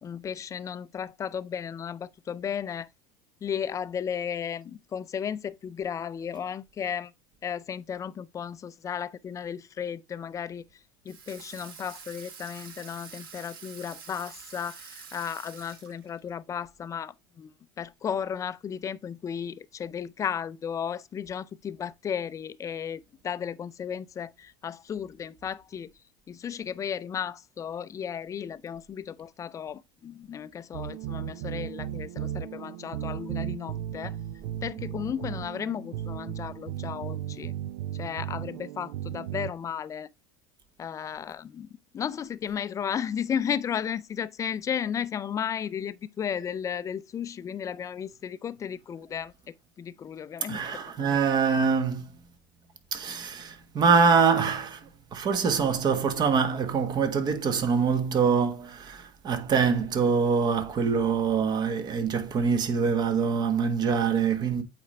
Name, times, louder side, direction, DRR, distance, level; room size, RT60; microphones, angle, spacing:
voice 1, 0.0-2.9 3.4-7.1 7.4-10.7 11.1-17.5 17.8-25.9 26.3-34.2 34.6-37.5 38.0-40.1 40.8-41.7 41.9-51.2, left 8 dB, 25° left, 0.5 m, -34 dB
Water tap faucet / Sink (filling or washing), 11.1-16.3, right 6 dB, 85° right, 1.4 m, -47 dB
sound 1, 30.7-39.5, right 11 dB, 70° right, 0.6 m, -35 dB
voice 2, 50.5-52.1 52.9-64.6, right 5 dB, 35° right, 1.4 m, -24 dB
8.3 x 4.4 x 3.2 m
hypercardioid pair, 100°, 12 cm